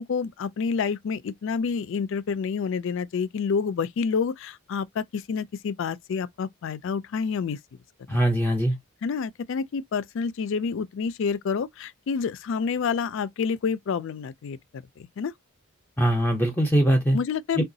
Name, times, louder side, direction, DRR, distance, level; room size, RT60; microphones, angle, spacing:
voice 1, 0.0-7.6 8.1-8.2 9.0-14.6 15.0-15.3 17.1-17.6, left 5 dB, 60° left, 0.3 m, -28 dB
voice 2, 8.1-8.8 16.0-17.2 17.6-17.7, right 1 dB, 10° left, 0.6 m, -21 dB
3.8 x 2.2 x 2.6 m
head